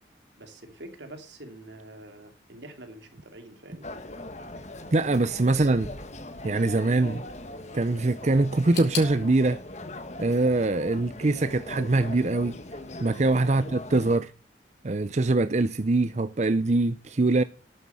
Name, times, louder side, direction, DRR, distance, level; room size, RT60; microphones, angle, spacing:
voice 1, 0.4-3.9 5.4-5.8 13.4-13.7, right 2 dB, 80° right, 2.9 m, -45 dB
sound 1, 3.8-14.2, left 1 dB, 40° left, 1.4 m, -40 dB
voice 2, 4.9-5.9 6.4-7.2 7.7-9.6 10.2-12.6 13.0-14.3 14.8-17.4, right 2 dB, 40° right, 0.5 m, -23 dB
sound 2, 8.7-11.6 11.8-12.7 13.0-13.1 13.9-14.0, left 8 dB, 75° left, 6.3 m, -41 dB
12.5 x 9.5 x 6.9 m
head